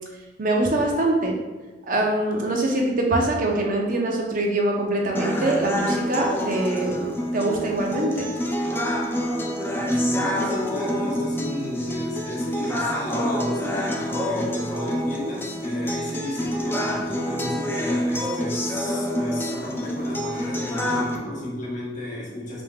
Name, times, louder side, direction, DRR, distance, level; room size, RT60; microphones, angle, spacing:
voice 1, 0.4-1.3 1.9-8.3, right 2 dB, 50° right, 0 dB, 0.7 m, -23 dB
sound 1, 5.2-21.2, equal, 15° left, 0.4 m, -27 dB
voice 2, 9.8-22.6, left 1 dB, 45° left, -4 dB, 1.1 m, -33 dB
5.1 x 3.6 x 2.3 m, 1.2 s
head